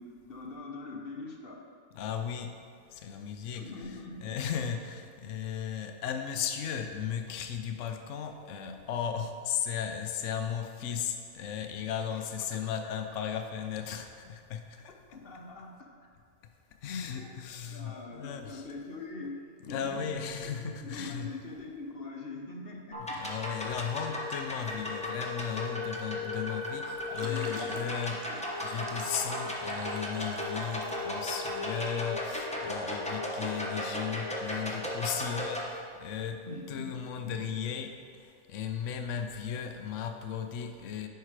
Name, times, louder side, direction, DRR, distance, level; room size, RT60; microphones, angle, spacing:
voice 1, 0.0-1.6 3.5-4.2 12.1-12.2 12.5-12.6 15.1-15.7 17.2-17.3 17.7-20.1 20.8-23.0 27.0-27.9 28.3-28.4 36.5-36.9 37.3-37.4, left 3 dB, 50° left, 1 dB, 1.0 m, -42 dB
voice 2, 1.9-2.6 2.9-14.9 16.8-18.7 19.6-21.3 23.0-28.3 28.6-41.1, left 8 dB, 70° left, 6 dB, 1.0 m, -36 dB
sound 1, 22.9-35.6, left 1 dB, 5° left, 0.8 m, -35 dB
sound 2, 26.9-31.9, right 2 dB, 30° right, 0.6 m, -47 dB
10.5 x 4.7 x 4.8 m, 2.1 s
omnidirectional pair, 1.3 m